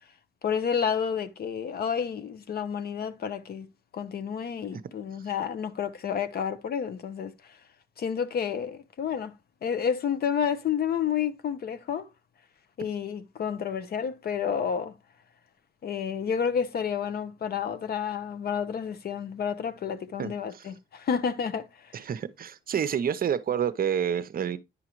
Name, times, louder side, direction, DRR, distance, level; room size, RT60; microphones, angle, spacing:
voice 1, 0.4-3.7 3.9-7.6 8.0-12.1 12.8-14.9 15.8-22.0, left 7 dB, 50° left, 0.7 m, -30 dB
voice 2, 20.2-20.7 21.9-24.6, right 8 dB, 45° right, 0.6 m, -29 dB
9.9 x 4.8 x 2.9 m
cardioid pair, 90°, 20 cm